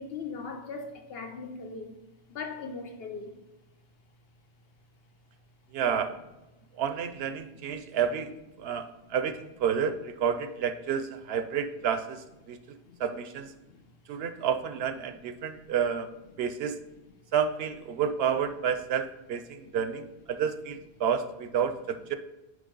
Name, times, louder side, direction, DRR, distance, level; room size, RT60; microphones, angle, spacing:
voice 1, 0.0-2.0 2.3-3.4 7.5-7.7 9.0-9.1 12.5-12.6 12.9-13.0 13.6-13.8 15.2-15.3 15.6-15.7 17.9-18.0 19.7-19.8, left 4 dB, 70° left, 1.0 m, -40 dB
voice 2, 5.7-6.1 6.8-13.5 14.1-16.1 16.4-16.8 17.3-22.1, right 7 dB, 75° right, 0.8 m, -30 dB
9.5 x 3.2 x 3.8 m
omnidirectional pair, 1.1 m